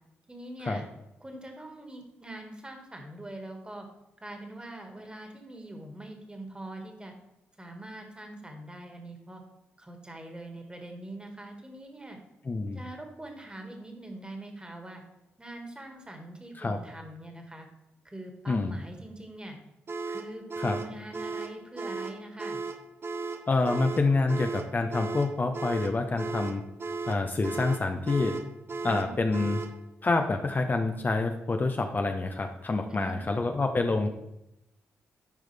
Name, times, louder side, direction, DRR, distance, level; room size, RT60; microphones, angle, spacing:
voice 1, 0.3-0.8 1.2-3.9 4.2-7.1 7.6-9.4 9.8-12.2 12.7-15.0 15.4-17.7 18.0-19.6 20.1-22.6 28.8-29.5 32.9-33.2, right 1 dB, 15° right, 4 dB, 1.8 m, -43 dB
voice 2, 12.5-12.8 16.6-16.8 18.5-18.8 20.6-20.8 23.5-26.6 27.1-28.3 28.8-29.6 30.0-34.1, left 3 dB, 35° left, 5 dB, 0.7 m, -27 dB
sound 1, 19.9-29.8, right 4 dB, 45° right, 0.7 m, -36 dB
10.5 x 4.8 x 3.4 m, 0.87 s
supercardioid pair, 45°, 5 cm